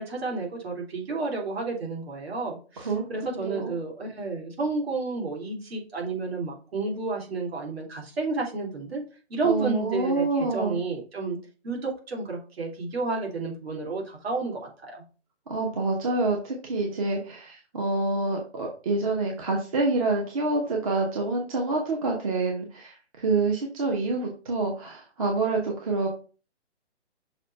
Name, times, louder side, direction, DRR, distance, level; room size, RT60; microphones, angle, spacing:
voice 1, 0.0-9.0 9.3-11.4 11.6-15.0, right 3 dB, 60° right, 0 dB, 2.9 m, -31 dB
voice 2, 2.8-3.7 9.4-10.8 15.5-26.1, right 3 dB, 30° right, 0 dB, 1.0 m, -27 dB
6.3 x 3.2 x 5.4 m, 0.36 s
hypercardioid pair, 165°, 35 cm